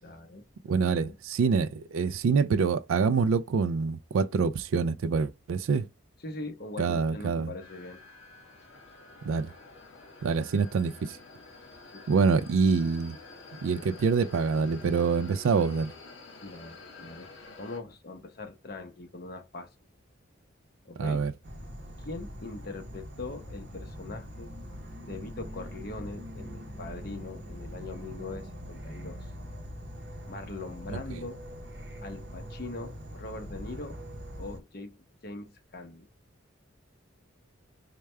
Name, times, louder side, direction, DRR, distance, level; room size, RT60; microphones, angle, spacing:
voice 1, 0.0-1.2 6.2-8.0 11.9-12.2 16.4-17.3 17.6-19.7 20.8-21.3 22.0-24.5 25.0-29.3 30.3-31.4 32.0-34.0 34.4-35.0 35.2-36.1, left 2 dB, 50° left, 0.8 m, -41 dB
voice 2, 0.7-5.9 6.8-7.5 9.2-9.5 10.2-11.2 12.1-13.2 13.6-15.9 21.0-21.3, right 5 dB, 85° right, 0.3 m, -26 dB
sound 1, 7.6-17.8, left 3 dB, 75° left, 1.2 m, -49 dB
Insect / Frog, 21.4-34.6, equal, 55° right, 0.7 m, -42 dB
4.6 x 2.2 x 3.3 m
head